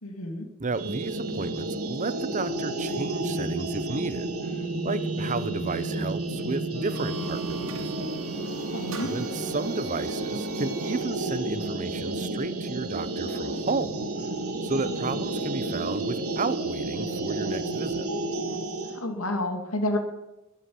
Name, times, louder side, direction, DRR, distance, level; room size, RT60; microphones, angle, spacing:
voice 1, 0.0-0.5 8.7-9.1 18.9-20.0, left 1 dB, 75° left, 4 dB, 2.5 m, -29 dB
voice 2, 0.6-7.9 9.1-14.0 14.6-18.1, right 3 dB, 35° right, 15 dB, 0.7 m, -33 dB
sound 1, 0.7-19.0, right 2 dB, 85° right, 2.7 m, -31 dB
sound 2, 6.7-11.2, right 4 dB, 60° right, 2.5 m, -45 dB
21.5 x 8.3 x 7.7 m, 1.0 s
head